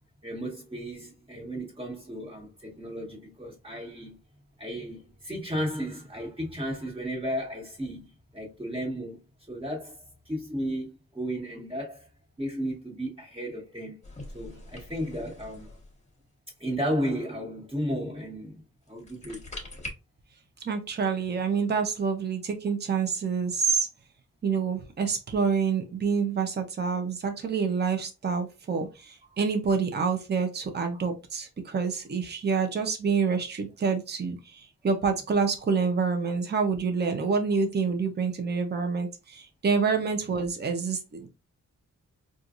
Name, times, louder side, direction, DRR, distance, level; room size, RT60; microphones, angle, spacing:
voice 1, 0.2-4.2 4.6-8.0 8.3-9.2 9.5-12.1 12.4-14.0 14.3-15.7 16.6-18.6 18.9-19.5, equal, 20° right, 1.7 m, -34 dB
sound 1, 14.0-16.2 18.9-19.9, left 1 dB, 25° left, 1.2 m, -43 dB
voice 2, 20.7-23.9 24.4-41.3, right 5 dB, 35° right, 0.7 m, -27 dB
4.4 x 2.5 x 2.5 m
wide cardioid pair, 110°, 30 cm